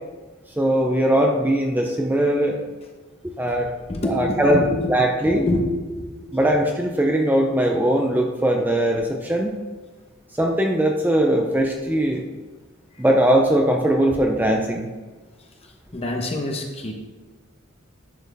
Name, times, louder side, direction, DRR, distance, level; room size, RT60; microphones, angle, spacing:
voice 1, 0.6-2.6 3.2-3.7 4.1-4.6 4.9-5.5 6.3-9.5 10.4-12.2 13.0-14.9, right 1 dB, 10° right, 1 dB, 0.5 m, -20 dB
voice 2, 3.4-4.9 5.2-5.6 5.9-6.3 12.9-13.0 15.4-16.9, left 1 dB, 30° left, 2 dB, 1.0 m, -28 dB
10.5 x 4.4 x 3.5 m, 1.3 s
head